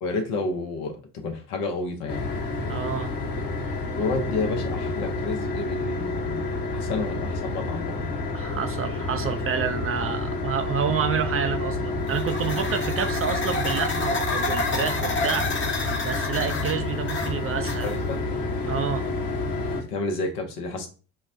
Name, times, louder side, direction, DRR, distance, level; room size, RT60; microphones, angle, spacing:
voice 1, 0.0-2.3 4.0-8.1 17.8-18.2 19.8-20.9, left 3 dB, 75° left, 0.9 m, -30 dB
sound 1, 2.1-19.8, left 2 dB, 50° left, 1.1 m, -29 dB
voice 2, 2.7-3.1 8.3-15.5 16.0-18.0 18.7-19.1, right 7 dB, 30° right, 0.5 m, -29 dB
sound 2, 12.0-18.2, left 3 dB, 25° left, 0.8 m, -30 dB
5.4 x 2.1 x 2.6 m
hypercardioid pair, 50°, 45 cm